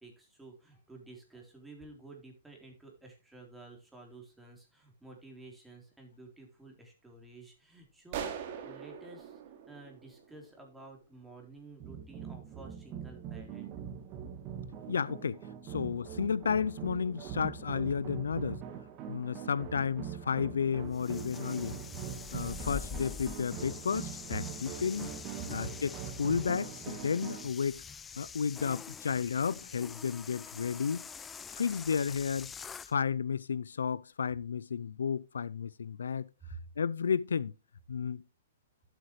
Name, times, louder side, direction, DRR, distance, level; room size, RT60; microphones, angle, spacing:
voice 1, 0.0-9.4 9.7-13.7 21.4-21.7 28.2-28.3 36.5-36.6, right 3 dB, 5° right, 3.7 m, -52 dB
sound 1, 8.1-10.7, right 8 dB, 50° right, 2.4 m, -42 dB
sound 2, 11.8-27.5, right 8 dB, 35° right, 2.0 m, -43 dB
voice 2, 14.9-18.6 19.1-21.8 22.3-25.1 25.5-27.8 28.2-31.0 31.5-32.5 32.9-36.3 36.8-37.5 37.9-38.2, left 6 dB, 80° left, 0.4 m, -32 dB
sound 3, 20.9-32.9, left 6 dB, 15° left, 0.5 m, -45 dB
12.0 x 8.0 x 3.1 m
hypercardioid pair, 125°, 0 cm